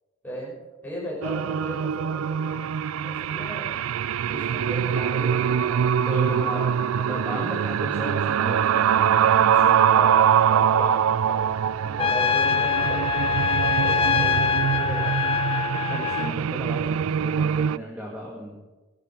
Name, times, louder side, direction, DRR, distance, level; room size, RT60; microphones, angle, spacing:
voice 1, 0.8-3.6 4.3-6.7 7.0-7.4 9.9-13.0 13.8-15.3, equal, 10° left, -6 dB, 6.2 m, -36 dB
sound 1, 1.2-17.8, right 8 dB, 85° right, 0.3 m, -23 dB
voice 2, 6.1-6.8 7.1-10.1 15.9-18.6, equal, 10° right, -3 dB, 2.0 m, -35 dB
Trumpet, 12.0-16.3, left 6 dB, 25° left, 0.4 m, -24 dB
19.0 x 11.5 x 4.6 m, 1.2 s
head